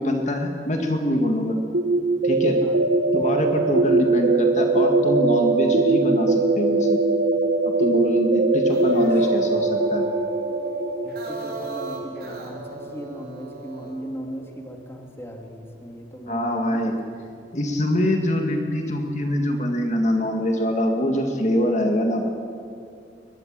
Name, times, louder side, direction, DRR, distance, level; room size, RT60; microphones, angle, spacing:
voice 1, 0.0-1.6 2.2-2.6 3.1-7.0 7.6-10.0 16.3-16.9 17.5-22.3, equal, 40° left, 3 dB, 1.9 m, -24 dB
sound 1, 1.7-13.5, right 3 dB, 85° right, 1.3 m, -21 dB
sound 2, 8.5-14.0, right 3 dB, 55° right, 4.7 m, -38 dB
voice 2, 8.7-10.1 11.0-17.2, equal, 15° left, 2 dB, 2.4 m, -38 dB
22.5 x 21.0 x 7.6 m, 2.3 s
head